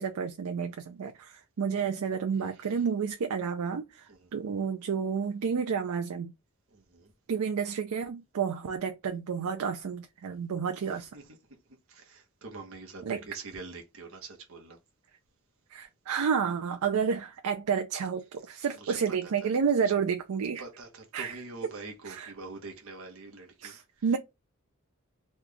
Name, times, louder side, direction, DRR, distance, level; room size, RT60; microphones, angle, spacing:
voice 1, 0.0-6.3 7.3-11.1 13.1-13.2 15.7-20.6 21.1-21.4 22.1-22.3 23.6-24.2, right 6 dB, 80° right, 0.4 m, -30 dB
voice 2, 6.7-7.1 10.8-11.3 11.9-14.8 18.7-19.5 19.8-20.0 20.6-24.1, right 3 dB, 60° right, 0.9 m, -45 dB
3.1 x 2.3 x 3.7 m
head